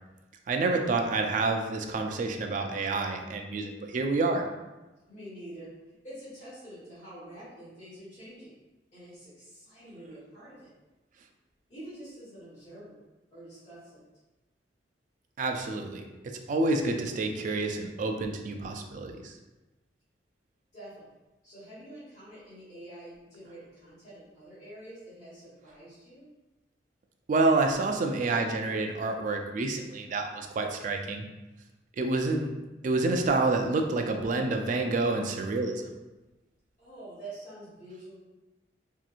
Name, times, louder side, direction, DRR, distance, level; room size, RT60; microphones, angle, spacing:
voice 1, 0.5-4.5 15.4-19.4 27.3-31.3 32.0-32.5 32.8-35.9, right 3 dB, 45° right, 4 dB, 0.3 m, -28 dB
voice 2, 5.1-8.5 8.9-10.7 11.7-13.0 13.3-14.0 20.7-21.1 21.4-26.2 36.8-38.2, right 1 dB, 40° left, -11 dB, 1.3 m, -47 dB
2.8 x 2.5 x 2.4 m, 1.1 s
head